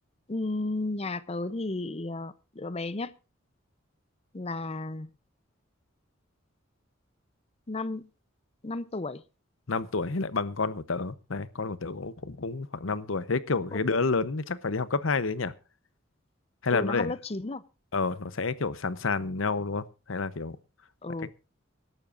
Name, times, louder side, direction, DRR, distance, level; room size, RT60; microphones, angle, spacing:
voice 1, 0.3-3.1 4.3-5.1 7.7-8.1 8.6-9.2 13.7-13.8 16.7-17.6 21.0-21.3, left 2 dB, 30° left, 0.7 m, -33 dB
voice 2, 9.7-15.5 16.6-17.1 17.9-20.6 21.2-21.3, left 4 dB, 80° left, 0.9 m, -29 dB
24.5 x 12.0 x 2.6 m
head